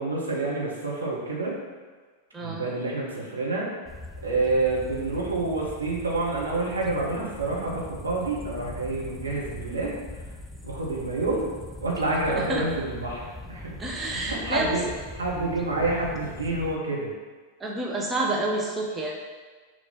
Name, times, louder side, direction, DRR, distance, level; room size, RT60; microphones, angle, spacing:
voice 1, 0.0-1.6 2.4-3.7 4.2-10.2 10.6-11.4 11.8-13.7 14.1-14.8 15.1-17.1, right 2 dB, 80° right, -4 dB, 1.7 m, -28 dB
voice 2, 2.3-2.7 12.3-12.7 13.8-14.8 17.6-19.1, right 2 dB, 15° right, -2 dB, 1.1 m, -29 dB
sound 1, 3.9-16.8, left 1 dB, 5° left, 0.5 m, -41 dB
6.5 x 3.7 x 5.9 m, 1.4 s
figure-of-eight pair, 90°, 0 cm